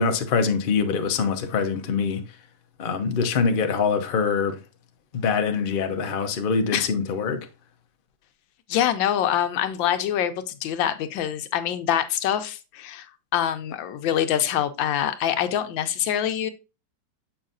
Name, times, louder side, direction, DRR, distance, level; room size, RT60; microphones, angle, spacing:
voice 1, 0.0-2.2 2.8-4.6 5.1-7.4, left 5 dB, 65° left, 0.5 m, -24 dB
voice 2, 8.7-13.1 13.3-16.5, left 10 dB, 85° left, 1.4 m, -25 dB
7.0 x 5.6 x 2.5 m
omnidirectional pair, 2.0 m